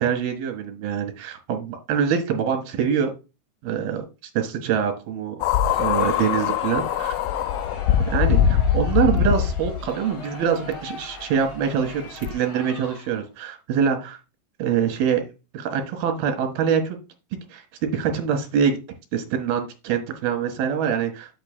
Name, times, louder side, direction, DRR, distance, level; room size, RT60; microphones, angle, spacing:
voice 1, 0.0-3.1 3.6-4.0 4.3-5.4 5.8-7.1 8.0-14.2 14.6-15.3 15.5-17.0 17.5-18.8 19.1-21.3, right 7 dB, 75° right, 7 dB, 3.5 m, -24 dB
sound 1, 5.4-9.9 10.7-10.8 12.2-12.3, left 9 dB, 85° left, 1.9 m, -22 dB
Crowd, 5.6-13.3, left 2 dB, 40° left, 6.3 m, -40 dB
9.3 x 8.0 x 2.2 m, 0.28 s
omnidirectional pair, 4.4 m